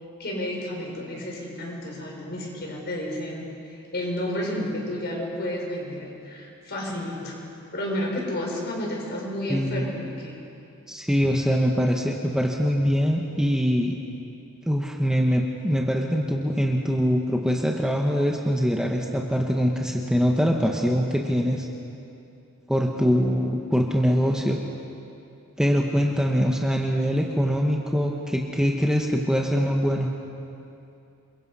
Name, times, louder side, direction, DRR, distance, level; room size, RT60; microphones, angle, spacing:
voice 1, 0.2-7.4 7.7-10.4, left 1 dB, 50° left, -1 dB, 5.5 m, -31 dB
voice 2, 9.5-9.8 10.9-14.0 14.7-21.7 22.7-24.6 25.6-30.1, equal, 5° right, 0 dB, 1.3 m, -23 dB
28.0 x 22.5 x 5.6 m, 2.7 s
head